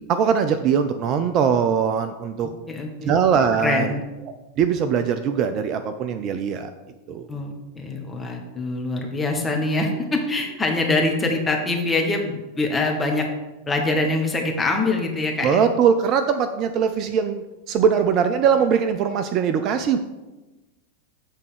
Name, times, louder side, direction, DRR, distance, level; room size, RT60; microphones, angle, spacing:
voice 1, 0.1-2.5 3.0-3.9 4.6-6.7 7.1-7.3 15.4-20.0, right 7 dB, 35° right, 9 dB, 0.4 m, -21 dB
voice 2, 2.7-3.2 3.6-4.0 7.3-13.3 13.7-15.6, left 2 dB, 10° left, 1 dB, 1.1 m, -24 dB
7.6 x 3.5 x 6.4 m, 1.1 s
figure-of-eight pair, 90°, 0 cm